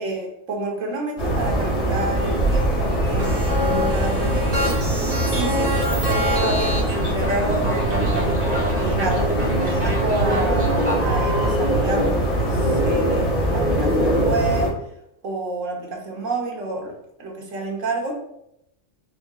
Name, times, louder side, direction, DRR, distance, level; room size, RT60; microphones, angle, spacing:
voice 1, 0.0-4.7 5.3-14.7 15.2-18.2, right 2 dB, 85° right, 0 dB, 1.4 m, -29 dB
sound 1, 1.2-14.7, right 1 dB, 60° left, 1.8 m, -22 dB
sound 2, 3.2-11.5, equal, 35° right, 1.5 m, -27 dB
5.0 x 2.7 x 3.8 m, 0.79 s
omnidirectional pair, 1.3 m